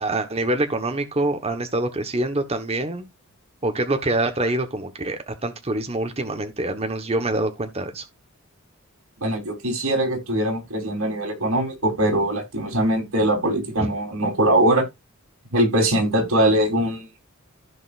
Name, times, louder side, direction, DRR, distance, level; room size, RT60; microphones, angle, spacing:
voice 1, 0.0-3.0 3.6-8.0 13.8-13.9, right 2 dB, 30° right, 1.3 m, -25 dB
voice 2, 9.2-14.8 15.5-17.1, right 1 dB, 85° right, 4.0 m, -21 dB
15.0 x 5.1 x 2.6 m
head